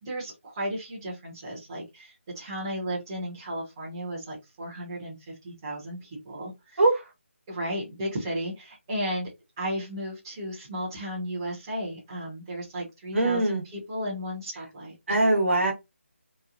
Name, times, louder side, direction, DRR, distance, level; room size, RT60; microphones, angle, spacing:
voice 1, 0.0-5.2 5.4-6.8 7.5-9.3 9.6-15.2, equal, 20° right, 0.9 m, -34 dB
voice 2, 13.1-13.6 15.1-15.7, right 2 dB, 65° right, 1.2 m, -22 dB
3.0 x 2.2 x 2.4 m
figure-of-eight pair, 170°, 7 cm